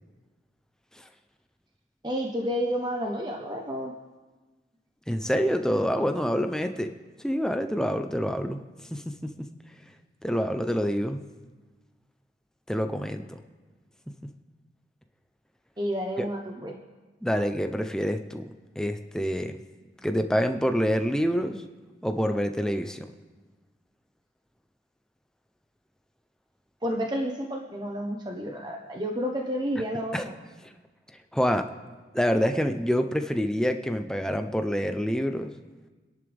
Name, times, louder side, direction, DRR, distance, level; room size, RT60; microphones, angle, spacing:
voice 1, 2.0-3.9 15.8-16.8 26.8-30.3, equal, 25° right, 1 dB, 1.0 m, -30 dB
voice 2, 5.1-6.9 7.2-8.6 8.9-9.5 10.2-11.2 12.7-13.4 14.2-14.3 16.2-16.3 17.2-18.4 18.8-19.6 20.0-21.6 22.0-23.1 30.1-30.3 31.3-31.7 32.1-35.5, equal, 5° left, 6 dB, 0.7 m, -27 dB
29.0 x 11.0 x 3.5 m, 1.3 s
head